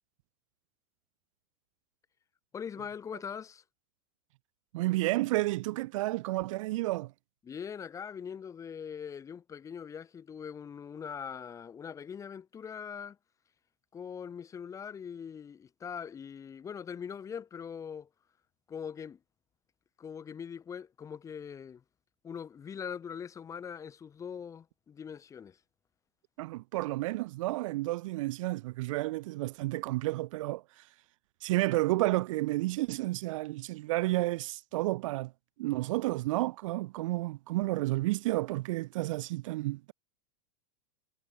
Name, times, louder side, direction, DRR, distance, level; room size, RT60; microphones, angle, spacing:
voice 1, 2.5-3.6 7.4-13.2 13.9-18.1 18.7-19.2 20.0-21.8 22.2-25.6, left 7 dB, 15° left, 1.6 m, -42 dB
voice 2, 4.7-7.1 26.4-30.8 31.4-35.3 35.6-39.9, right 19 dB, 65° right, 0.4 m, -31 dB
supercardioid pair, 145°, 18 cm